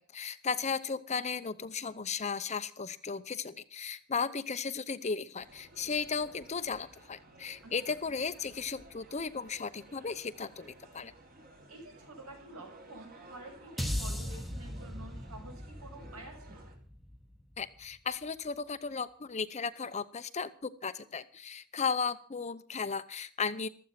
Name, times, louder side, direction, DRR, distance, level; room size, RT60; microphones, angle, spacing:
voice 1, 0.1-11.1 17.6-23.7, left 5 dB, 30° left, 12 dB, 0.8 m, -35 dB
sound 1, 5.4-16.8, right 1 dB, 45° right, 4.0 m, -55 dB
voice 2, 11.7-16.7, right 2 dB, 75° right, 3 dB, 7.6 m, -49 dB
sound 2, 13.8-18.1, equal, ahead, 1.2 m, -39 dB
15.5 x 13.5 x 5.9 m, 0.42 s
head